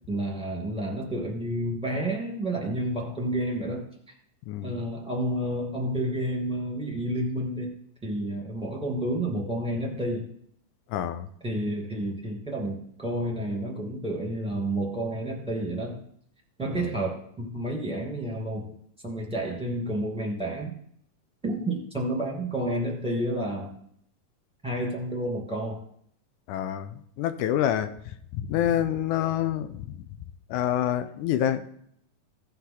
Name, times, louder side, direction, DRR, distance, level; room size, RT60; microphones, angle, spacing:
voice 1, 0.1-3.9 4.6-10.3 11.4-16.0 16.6-18.7 19.0-20.8 21.4-23.7 24.6-25.8, right 1 dB, ahead, -2 dB, 1.8 m, -30 dB
voice 2, 4.5-4.8 10.9-11.3 16.8-16.9 26.5-27.9 28.4-30.0 30.5-31.6, left 11 dB, 80° left, 10 dB, 1.9 m, -27 dB
16.5 x 5.7 x 3.9 m, 0.68 s
omnidirectional pair, 4.0 m